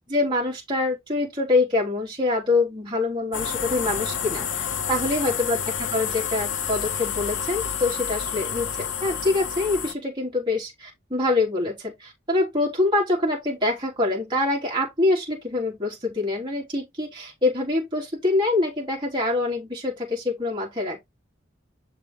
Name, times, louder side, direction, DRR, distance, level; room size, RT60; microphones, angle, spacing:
voice 1, 0.1-21.0, left 2 dB, 25° right, 3.2 m, -25 dB
sound 1, 3.3-9.9, left 7 dB, 80° left, 0.8 m, -29 dB
7.0 x 4.9 x 3.7 m
head